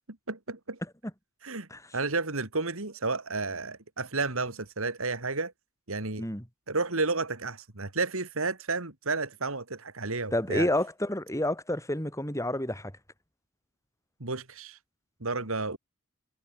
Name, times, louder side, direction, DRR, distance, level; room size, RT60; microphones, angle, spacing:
voice 1, 0.3-0.8 1.4-1.7 1.9-5.5 5.9-6.2 6.7-10.7 14.2-14.8 15.2-15.8, right 3 dB, 70° right, 2.6 m, -31 dB
voice 2, 10.3-12.9, left 1 dB, 15° left, 5.1 m, -29 dB
head